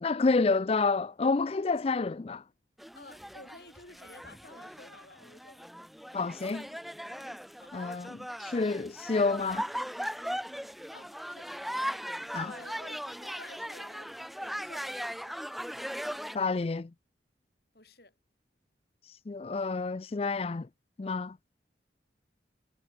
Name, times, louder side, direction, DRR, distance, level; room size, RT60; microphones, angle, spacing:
voice 1, 0.0-2.4 6.1-6.7 7.7-9.7 12.3-12.5 16.3-16.9 19.0-20.7 21.0-21.4, left 3 dB, 35° left, 0.4 m, -29 dB
sound 1, 2.8-16.4, equal, ahead, 3.6 m, -39 dB
voice 2, 2.9-5.7 6.7-6.8 7.1-7.3 7.6-7.8 10.9-11.5 12.4-15.4 16.3-16.4 17.7-18.1, left 2 dB, 60° left, 7.5 m, -53 dB
head